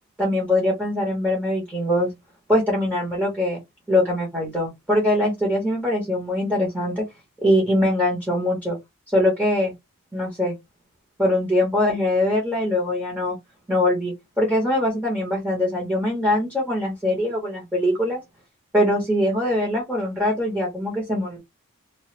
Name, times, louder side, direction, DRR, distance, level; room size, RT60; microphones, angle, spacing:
voice 1, 0.2-2.1 2.5-3.6 3.9-7.0 7.4-8.8 9.1-9.7 10.1-10.5 11.2-13.4 13.7-18.2 18.7-21.4, left 1 dB, 10° right, 1.0 m, -22 dB
3.0 x 2.2 x 3.2 m
head